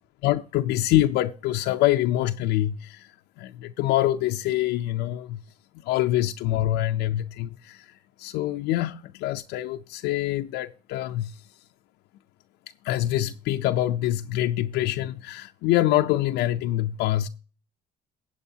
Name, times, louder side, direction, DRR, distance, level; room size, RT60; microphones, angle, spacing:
voice 1, 0.2-5.4 5.7-11.5 12.8-17.3, left 14 dB, 90° left, 0.5 m, -25 dB
15.5 x 8.6 x 2.8 m
cardioid pair, 110°, 17 cm